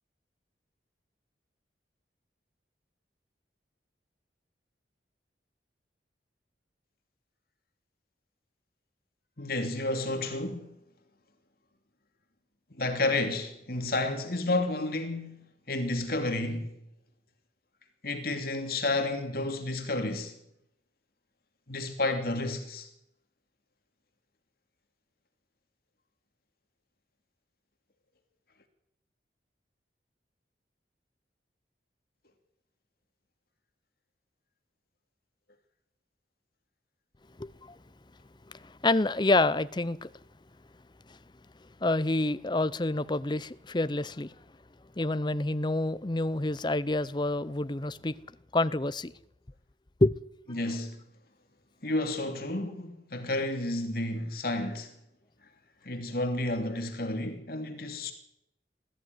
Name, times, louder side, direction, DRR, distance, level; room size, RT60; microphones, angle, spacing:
voice 1, 9.4-10.7 12.7-15.4 15.7-16.7 18.0-20.4 21.7-22.9 50.5-51.0 51.8-54.9 55.8-58.1, left 2 dB, 55° left, 3.0 m, -31 dB
voice 2, 37.4-37.8 38.5-40.1 41.8-44.3 45.0-48.1 48.5-49.1 50.0-50.2, left 2 dB, 25° left, 0.7 m, -28 dB
20.5 x 14.5 x 9.7 m
head